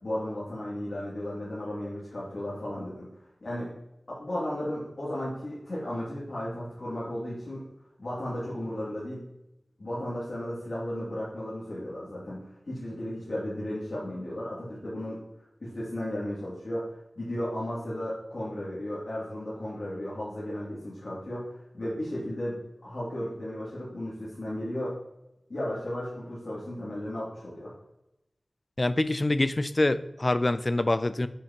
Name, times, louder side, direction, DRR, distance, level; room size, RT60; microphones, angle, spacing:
voice 1, 0.0-3.7 4.1-7.7 8.0-9.2 9.8-15.2 15.6-25.0 25.5-27.7, left 1 dB, 70° left, -8 dB, 2.7 m, -35 dB
voice 2, 28.8-31.3, left 2 dB, 40° left, 13 dB, 0.4 m, -25 dB
8.6 x 5.3 x 3.0 m, 0.90 s
wide cardioid pair, 50°, 0 cm